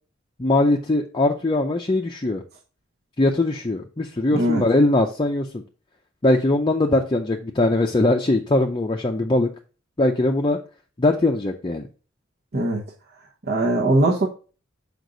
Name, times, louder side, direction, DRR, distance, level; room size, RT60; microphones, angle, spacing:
voice 1, 0.4-2.4 3.2-5.6 6.2-9.5 10.0-10.6 11.0-11.8, left 2 dB, 25° left, 2 dB, 0.5 m, -21 dB
voice 2, 4.3-4.6 12.5-12.8 13.5-14.3, right 1 dB, 50° right, -2 dB, 1.0 m, -20 dB
6.4 x 5.1 x 3.9 m, 0.36 s
head